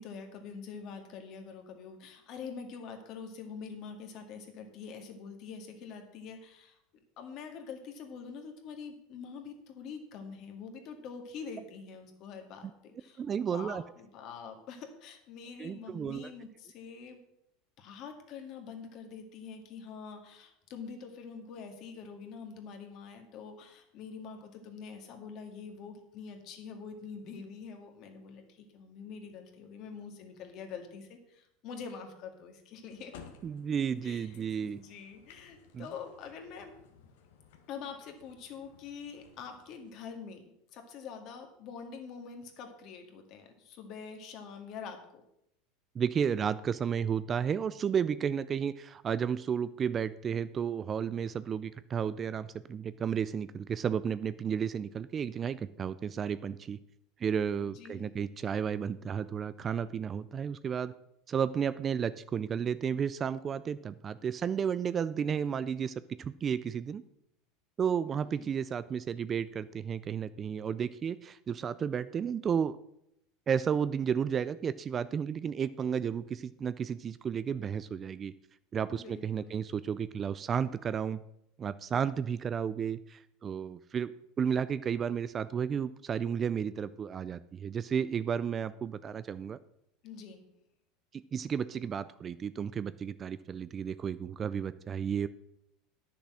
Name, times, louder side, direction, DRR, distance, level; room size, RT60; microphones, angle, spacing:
voice 1, 0.0-6.8 7.2-13.2 13.5-17.2 17.8-33.1 34.0-36.7 37.7-40.4 40.7-45.0 57.6-58.1 68.4-68.5 78.9-79.5 90.0-90.4, left 6 dB, 50° left, 5 dB, 2.0 m, -45 dB
voice 2, 13.2-13.8 15.6-16.3 33.4-34.8 35.7-35.9 45.9-56.8 57.2-60.9 61.3-67.0 67.8-72.8 73.5-78.3 78.7-81.2 81.6-89.6 91.1-95.3, right 7 dB, 25° right, 15 dB, 0.4 m, -32 dB
sound 1, 32.9-40.1, left 7 dB, 80° left, 1.5 m, -57 dB
10.0 x 6.9 x 6.2 m, 0.79 s
supercardioid pair, 130°, 0 cm